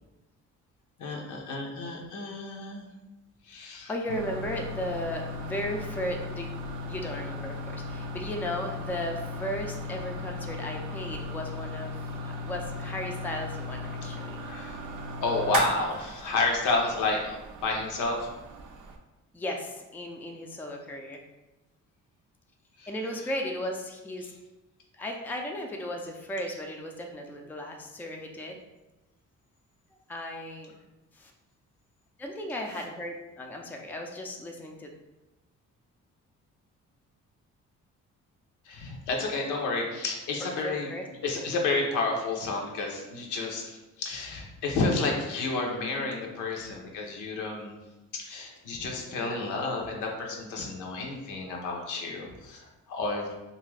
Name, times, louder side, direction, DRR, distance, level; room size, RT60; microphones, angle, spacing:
voice 1, 1.0-2.8 3.5-4.0 14.4-14.8 15.2-18.3 22.8-23.4 24.2-24.3 32.7-32.8 38.7-47.7 48.1-53.3, left 3 dB, 85° left, 0 dB, 0.7 m, -31 dB
voice 2, 3.6-6.5 6.9-14.4 19.3-21.2 22.9-24.3 24.9-28.6 30.1-30.7 31.1-31.3 32.2-34.9 40.6-41.1 48.9-49.6, left 1 dB, 5° left, 1 dB, 0.3 m, -36 dB
sound 1, 4.1-19.0, left 1 dB, 85° right, 0.5 m, -37 dB
2.6 x 2.4 x 3.2 m, 1.0 s
cardioid pair, 90°, 30 cm